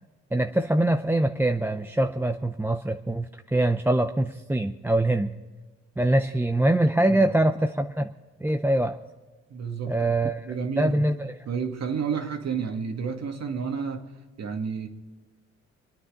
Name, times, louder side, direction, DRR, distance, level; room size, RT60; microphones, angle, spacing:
voice 1, 0.3-5.3 6.0-8.1 8.4-9.0 9.9-10.5 10.8-11.4, right 1 dB, 5° right, 7 dB, 0.6 m, -24 dB
voice 2, 9.5-10.1 10.4-11.1 11.5-14.1 14.4-14.9, right 6 dB, 60° right, 4 dB, 2.3 m, -30 dB
26.5 x 9.6 x 5.1 m, 1.3 s
cardioid pair, 90°, 30 cm